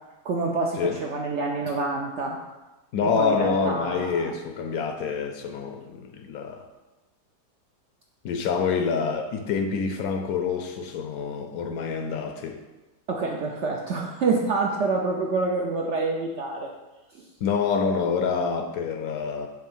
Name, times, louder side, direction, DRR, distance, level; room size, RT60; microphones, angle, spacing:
voice 1, 0.2-2.4 3.0-4.3 13.1-16.7 17.1-17.3, right 3 dB, 65° right, 0 dB, 0.7 m, -27 dB
voice 2, 2.9-6.7 8.2-12.6 17.4-19.5, left 5 dB, 70° left, 6 dB, 0.9 m, -27 dB
7.5 x 2.7 x 5.5 m, 1.1 s
omnidirectional pair, 1.8 m